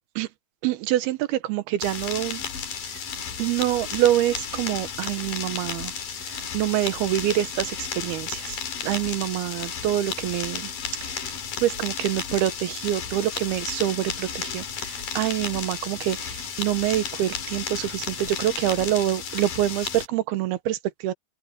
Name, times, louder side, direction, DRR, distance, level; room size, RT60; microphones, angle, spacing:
voice 1, 0.6-2.4 3.4-5.9 6.3-10.7 11.1-11.3 11.6-20.8 21.0-21.1, right 13 dB, 80° right, 2.9 m, -26 dB
sound 1, 1.8-20.1, left 7 dB, 60° left, 4.2 m, -33 dB
open air
omnidirectional pair, 4.6 m